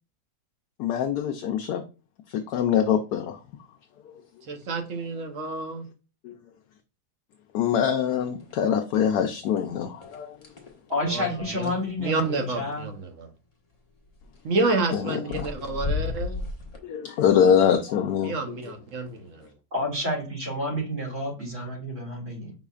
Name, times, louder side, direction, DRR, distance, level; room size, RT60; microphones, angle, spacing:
voice 1, 0.8-1.8 2.3-3.4 6.2-6.4 7.5-10.4 14.9-15.4 16.8-18.3, left 8 dB, 75° left, 1.1 m, -24 dB
voice 2, 4.5-5.8 11.1-11.3 11.5-11.7 12.0-13.3 14.4-16.4 18.2-19.5, right 3 dB, 55° right, 1.1 m, -29 dB
sound 1, 8.4-8.6 8.9-9.6 10.0-11.9 14.1-14.4 15.0-15.1 15.3-16.8, left 4 dB, 30° left, 0.9 m, -33 dB
voice 3, 10.9-12.9 19.7-22.5, left 1 dB, 40° right, 2.5 m, -29 dB
5.5 x 4.0 x 2.4 m
omnidirectional pair, 1.8 m